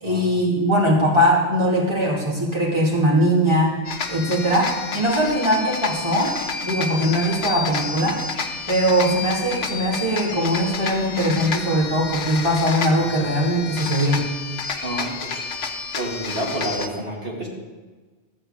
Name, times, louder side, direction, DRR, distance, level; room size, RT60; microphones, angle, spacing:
voice 1, 0.0-3.8 4.1-6.3 6.6-8.2 8.7-14.3, equal, 25° right, -4 dB, 2.5 m, -20 dB
sound 1, 3.8-16.9, left 5 dB, 90° left, 1.2 m, -30 dB
voice 2, 14.8-15.4 15.9-17.5, right 1 dB, 55° right, -4 dB, 2.7 m, -29 dB
13.0 x 4.4 x 8.5 m, 1.3 s
omnidirectional pair, 1.2 m